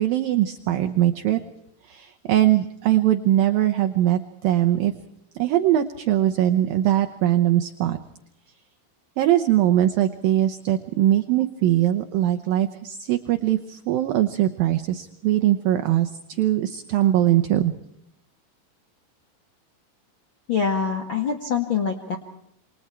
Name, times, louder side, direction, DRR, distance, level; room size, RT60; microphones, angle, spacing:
voice 1, 0.0-1.4 1.8-4.9 5.3-8.0 9.2-17.7, right 13 dB, 80° right, 6 dB, 2.0 m, -21 dB
voice 2, 20.5-22.2, left 6 dB, 70° left, 4 dB, 1.1 m, -25 dB
28.0 x 25.5 x 4.5 m, 0.76 s
omnidirectional pair, 5.4 m